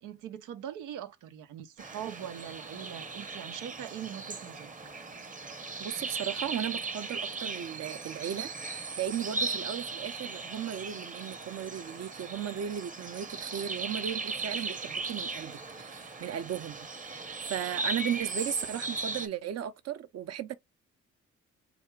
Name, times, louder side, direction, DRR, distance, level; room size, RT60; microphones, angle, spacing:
voice 1, 0.0-4.7, right 10 dB, 90° right, 0.8 m, -42 dB
sound 1, 1.8-19.3, right 3 dB, 25° right, 0.9 m, -38 dB
voice 2, 5.8-8.5 9.0-16.9 17.4-20.5, right 10 dB, 55° right, 0.8 m, -36 dB
4.0 x 2.5 x 4.6 m
cardioid pair, 90°, 30 cm